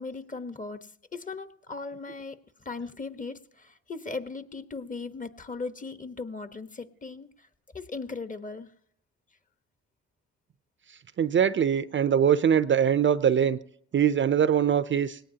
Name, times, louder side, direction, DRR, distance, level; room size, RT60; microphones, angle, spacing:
voice 1, 0.0-7.5 7.7-8.7, left 4 dB, 25° left, 1.2 m, -38 dB
voice 2, 11.2-13.6 13.9-15.2, right 8 dB, 40° right, 0.6 m, -22 dB
19.5 x 18.0 x 2.8 m
cardioid pair, 90°, 30 cm